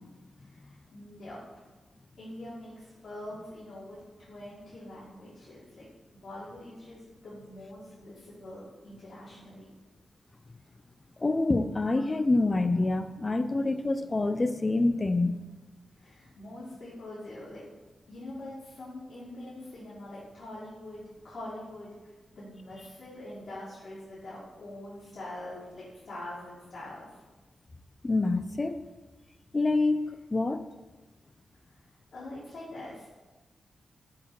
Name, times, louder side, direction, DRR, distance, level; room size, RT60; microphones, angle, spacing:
voice 1, 0.4-1.7 2.2-5.9 6.1-9.7 16.0-17.6 18.1-27.1 31.7-31.8 32.1-33.1, left 1 dB, 65° left, -10 dB, 1.9 m, -44 dB
voice 2, 11.2-15.4 28.0-28.8 29.5-30.6, left 2 dB, 25° left, 10 dB, 0.3 m, -26 dB
5.8 x 3.8 x 4.6 m, 1.2 s
wide cardioid pair, 115°, 0 cm